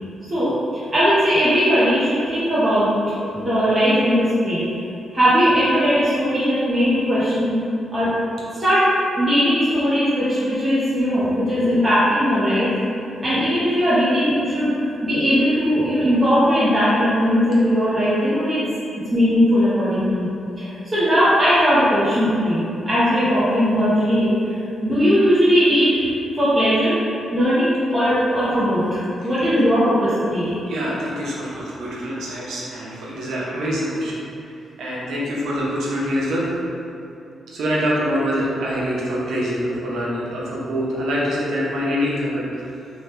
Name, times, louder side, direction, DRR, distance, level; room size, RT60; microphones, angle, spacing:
voice 1, 0.3-2.9 3.2-4.8 5.1-7.6 7.9-8.1 8.6-12.7 13.2-18.6 19.1-20.3 20.6-26.0 26.3-27.0 27.3-30.6, equal, 20° right, -13 dB, 0.6 m, -19 dB
voice 2, 30.7-34.5 34.8-36.5 37.5-42.6, equal, 90° right, -6 dB, 0.6 m, -25 dB
2.8 x 2.2 x 3.2 m, 2.7 s
wide cardioid pair, 155°, 0 cm